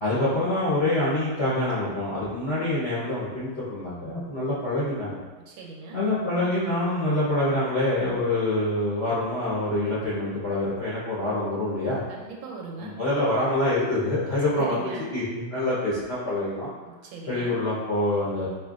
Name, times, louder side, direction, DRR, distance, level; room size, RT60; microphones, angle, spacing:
voice 1, 0.0-5.2 5.9-12.0 12.8-16.7 17.3-18.5, left 1 dB, 45° left, -10 dB, 0.8 m, -26 dB
voice 2, 5.5-6.0 12.1-13.0 14.6-15.0 16.9-17.5, right 4 dB, 80° right, 0 dB, 1.4 m, -39 dB
4.3 x 3.1 x 2.4 m, 1.3 s
omnidirectional pair, 2.2 m